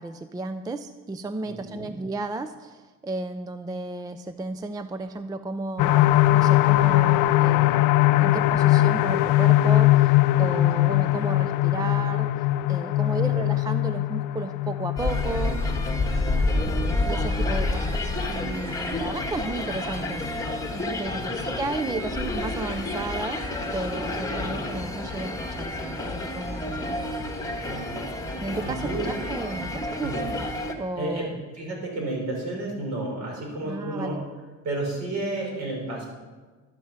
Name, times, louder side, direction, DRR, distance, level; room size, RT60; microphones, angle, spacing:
voice 1, 0.0-7.8 8.2-12.3 12.7-15.6 16.6-20.3 20.7-27.2 28.4-30.1 30.4-31.4 33.6-34.2, right 2 dB, 10° right, 10 dB, 0.4 m, -34 dB
voice 2, 1.5-1.9 10.8-11.0 13.0-13.4 16.3-16.9 21.1-21.6 24.2-24.5 27.6-28.0 28.6-29.3 29.6-30.3 31.0-34.2 34.6-36.0, right 2 dB, 55° right, -1 dB, 5.4 m, -33 dB
sound 1, 5.8-19.3 19.7-19.8 20.2-20.3, left 16 dB, 75° left, 0.5 m, -21 dB
sound 2, 15.0-30.7, left 2 dB, 10° left, 1.3 m, -29 dB
12.0 x 8.7 x 7.3 m, 1.3 s
cardioid pair, 155°, 32 cm